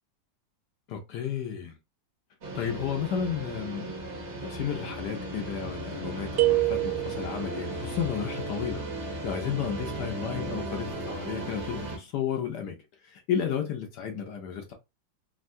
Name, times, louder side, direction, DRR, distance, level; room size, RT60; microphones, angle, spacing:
voice 1, 0.9-1.8 2.5-3.9 4.4-12.8 13.0-14.7, left 8 dB, 70° left, 1.1 m, -33 dB
sound 1, 2.4-12.0, right 2 dB, 45° right, 1.0 m, -36 dB
sound 2, 6.4-7.6, right 19 dB, 75° right, 0.9 m, -25 dB
3.6 x 2.2 x 2.5 m
omnidirectional pair, 2.1 m